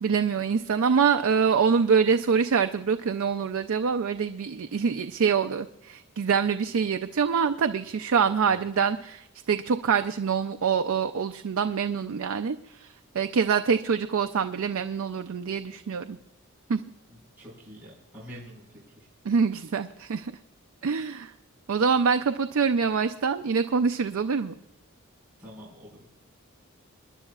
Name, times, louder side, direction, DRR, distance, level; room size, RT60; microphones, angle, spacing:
voice 1, 0.0-12.9 13.1-16.2 16.7-16.8 19.2-20.3 20.8-21.3 21.7-24.5, right 6 dB, 70° right, 8 dB, 0.4 m, -25 dB
voice 2, 17.1-18.8 25.4-26.1, equal, 10° right, -8 dB, 5.1 m, -46 dB
27.0 x 10.5 x 2.4 m, 0.88 s
head